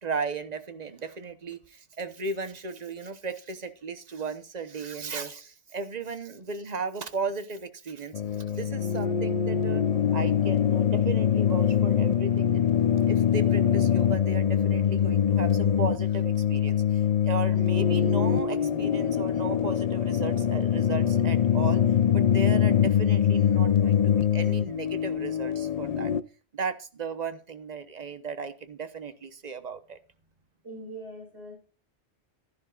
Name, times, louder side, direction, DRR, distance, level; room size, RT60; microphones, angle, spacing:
voice 1, 0.0-8.2 8.5-9.8 10.1-12.6 13.1-21.8 22.1-26.1 26.5-30.0, right 4 dB, 40° right, 1.0 m, -35 dB
sound 1, 8.1-26.2, left 8 dB, 55° left, 0.4 m, -24 dB
voice 2, 30.6-31.5, right 1 dB, 65° right, 5.0 m, -41 dB
13.0 x 11.0 x 2.4 m
omnidirectional pair, 1.2 m